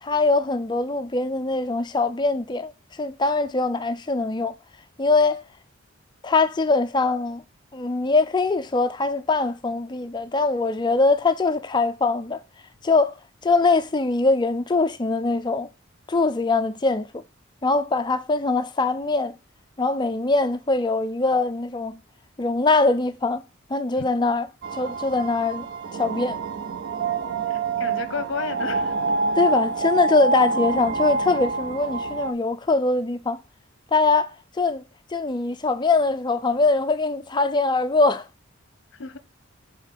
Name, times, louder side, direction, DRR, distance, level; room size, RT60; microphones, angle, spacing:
voice 1, 0.0-4.5 5.0-5.4 6.2-7.4 7.7-12.4 12.8-13.2 13.4-15.7 16.1-17.1 17.6-19.4 19.8-22.0 22.4-23.4 23.7-24.5 24.7-25.7 25.9-26.4 29.4-33.4 33.9-34.8 35.1-38.3, left 3 dB, 20° left, 0.4 m, -22 dB
sound 1, 24.6-32.3, right 3 dB, 60° right, 0.5 m, -26 dB
voice 2, 27.5-28.9 39.0-39.2, left 5 dB, 60° left, 0.8 m, -32 dB
6.6 x 3.7 x 5.3 m
head